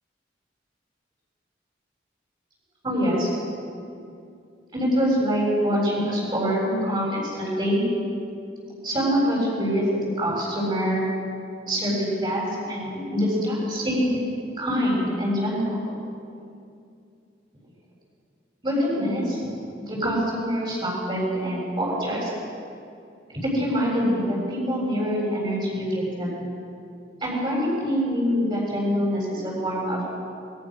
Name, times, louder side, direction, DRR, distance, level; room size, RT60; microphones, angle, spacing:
voice 1, 2.8-3.3 4.7-7.8 8.8-9.9 10.2-11.0 11.6-14.1 14.6-16.0 18.6-19.4 19.8-22.3 23.3-26.3 27.2-30.1, equal, 30° right, -5 dB, 7.4 m, -25 dB
27.5 x 23.0 x 6.5 m, 2.5 s
head